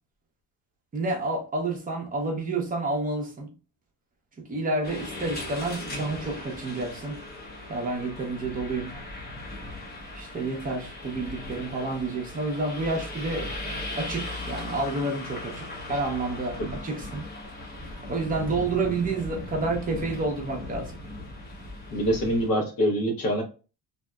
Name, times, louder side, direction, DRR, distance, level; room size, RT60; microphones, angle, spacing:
voice 1, 0.9-3.5 4.5-7.2 7.7-8.9 10.1-13.5 14.0-17.2 18.1-20.9, right 3 dB, 20° right, 0.6 m, -29 dB
sound 1, 4.8-22.5, left 1 dB, 25° left, 0.7 m, -38 dB
voice 2, 21.9-23.4, equal, 55° left, 1.0 m, -25 dB
2.7 x 2.1 x 2.2 m
cardioid pair, 145°, 40 cm